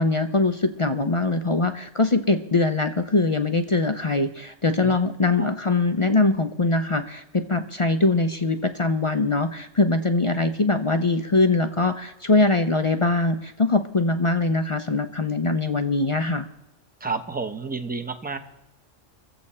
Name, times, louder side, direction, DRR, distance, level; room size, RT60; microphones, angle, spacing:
voice 1, 0.0-16.5, left 3 dB, 35° left, 8 dB, 0.5 m, -22 dB
voice 2, 17.0-18.4, right 4 dB, 10° right, 6 dB, 0.7 m, -30 dB
23.0 x 7.8 x 4.3 m, 0.92 s
omnidirectional pair, 1.3 m